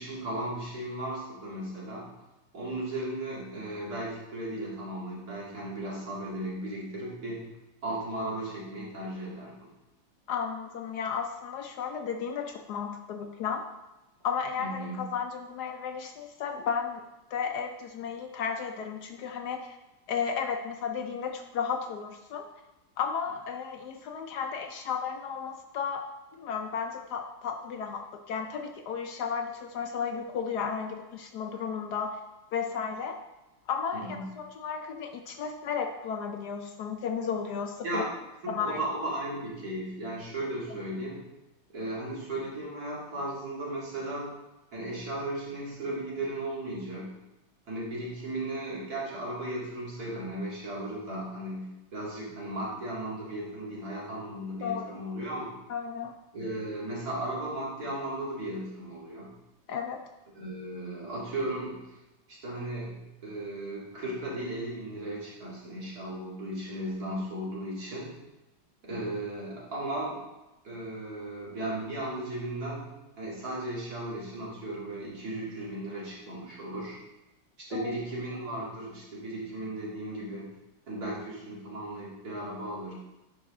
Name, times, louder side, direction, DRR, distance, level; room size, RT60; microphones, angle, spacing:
voice 1, 0.0-2.1 2.5-7.5 7.8-9.7 14.6-15.0 33.9-34.3 37.8-38.1 38.6-41.2 41.7-44.3 44.7-47.1 47.7-55.5 56.3-59.3 60.3-62.0 62.3-68.1 68.8-70.2 70.6-72.8 73.2-77.0 77.6-80.5 80.9-82.9, right 1 dB, 55° right, -6 dB, 2.8 m, -36 dB
voice 2, 10.3-13.7 14.2-17.0 17.3-19.8 20.1-22.5 23.0-26.0 26.4-32.2 32.5-33.2 33.7-38.0 38.5-38.8 54.6-55.0 55.7-56.1 59.7-60.0 77.7-77.9, left 6 dB, 70° left, 5 dB, 1.1 m, -33 dB
10.5 x 5.1 x 3.7 m, 1.0 s
omnidirectional pair, 2.0 m